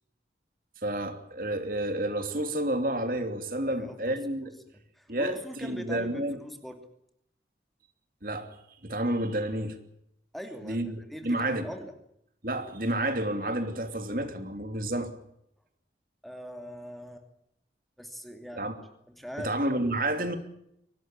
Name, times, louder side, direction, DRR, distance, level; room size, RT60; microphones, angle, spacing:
voice 1, 0.8-4.5 5.1-6.4 8.2-8.5 8.8-9.8 10.6-11.7 12.4-15.1 18.6-18.7 19.4-20.4, right 1 dB, 50° right, 3.0 m, -30 dB
voice 2, 3.7-4.2 4.7-6.9 10.3-11.9 16.2-17.2 18.0-18.7 19.1-19.8, equal, ahead, 2.7 m, -42 dB
24.5 x 18.5 x 8.9 m
head